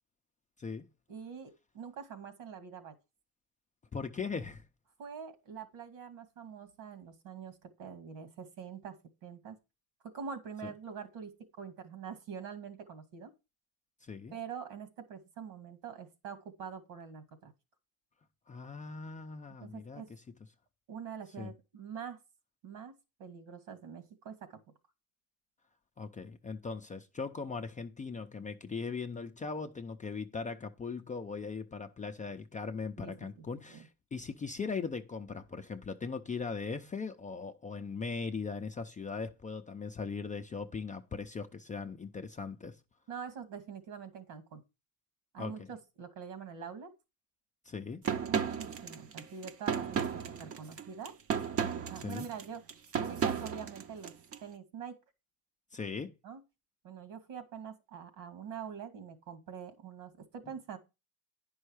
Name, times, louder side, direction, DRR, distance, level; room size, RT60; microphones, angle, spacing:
voice 1, 1.1-3.0 5.0-9.0 9.2-9.6 10.1-13.3 14.3-17.5 19.6-20.1 20.9-22.2 22.6-22.9 23.2-24.6 33.0-33.1 33.7-33.9 43.1-44.6 45.3-46.9 48.3-51.1 51.9-52.6 53.0-54.1 54.4-55.0 56.2-56.4 56.8-60.8, right 7 dB, 85° right, 2.5 m, -45 dB
voice 2, 3.9-4.6 10.6-10.7 14.0-14.3 18.5-20.2 21.4-21.5 26.0-42.8 45.4-45.7 47.7-48.0 52.0-52.3 55.7-56.1, left 5 dB, 15° left, 0.4 m, -39 dB
sound 1, 48.0-54.4, right 7 dB, 30° right, 0.6 m, -34 dB
10.5 x 5.5 x 4.8 m
cardioid pair, 130°, 50 cm